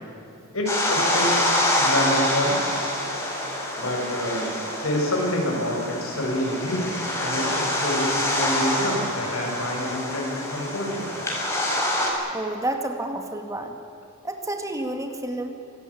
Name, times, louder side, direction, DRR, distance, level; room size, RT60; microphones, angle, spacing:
voice 1, 0.5-1.3 1.8-2.9 3.8-11.1, left 1 dB, 85° left, 0 dB, 7.4 m, -27 dB
sound 1, 0.7-12.1, left 1 dB, 15° left, 5.5 m, -26 dB
voice 2, 12.3-13.7 14.2-15.6, right 1 dB, 15° right, 5 dB, 2.1 m, -30 dB
25.5 x 18.5 x 8.7 m, 2.9 s
head